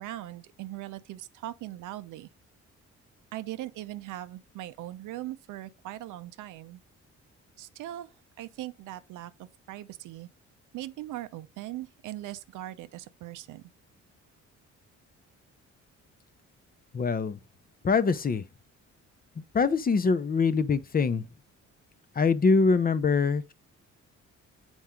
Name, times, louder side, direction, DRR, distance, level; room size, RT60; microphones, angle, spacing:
voice 1, 0.0-2.3 3.3-6.8 7.6-8.1 8.4-10.3 10.7-13.6, right 14 dB, 85° right, 0.6 m, -40 dB
voice 2, 16.9-17.4 17.8-18.4 19.5-21.2 22.2-23.5, left 4 dB, 30° left, 0.6 m, -24 dB
7.1 x 4.5 x 3.7 m
cardioid pair, 90°, 30 cm